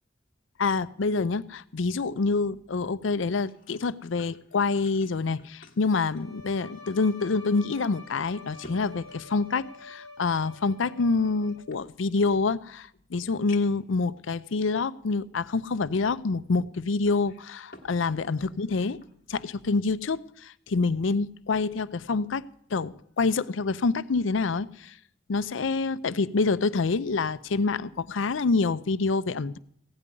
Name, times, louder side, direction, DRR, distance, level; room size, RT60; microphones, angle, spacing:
voice 1, 0.6-19.0 19.3-22.4 22.7-24.9 25.3-29.6, left 4 dB, 75° left, 15 dB, 0.5 m, -27 dB
sound 1, 3.0-7.1 7.4-7.5 8.1-10.1 10.9-12.4 12.9-13.0 13.5-13.9 14.7-14.8 17.0-18.0 18.3-19.2 19.6-19.8, left 3 dB, 45° left, 1.3 m, -52 dB
Bowed string instrument, 6.1-11.9, left 3 dB, 85° right, 2.1 m, -48 dB
16.0 x 5.4 x 9.7 m, 0.65 s
head